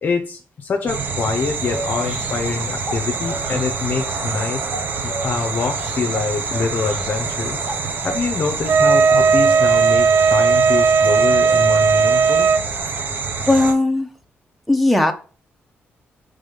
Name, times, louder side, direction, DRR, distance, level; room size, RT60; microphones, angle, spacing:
voice 1, 0.0-4.6 5.0-7.7 8.0-12.5, left 4 dB, 45° left, 5 dB, 0.6 m, -25 dB
sound 1, 0.9-13.7, right 4 dB, 45° right, 0.8 m, -27 dB
sound 2, 1.2-11.0, right 2 dB, 20° right, 1.6 m, -36 dB
Wind instrument woodwind instrument, 8.7-12.6, right 5 dB, 70° right, 0.4 m, -15 dB
voice 2, 13.4-14.1 14.7-15.1, left 2 dB, ahead, 4 dB, 0.7 m, -17 dB
5.2 x 3.6 x 5.2 m, 0.37 s
wide cardioid pair, 155°, 4 cm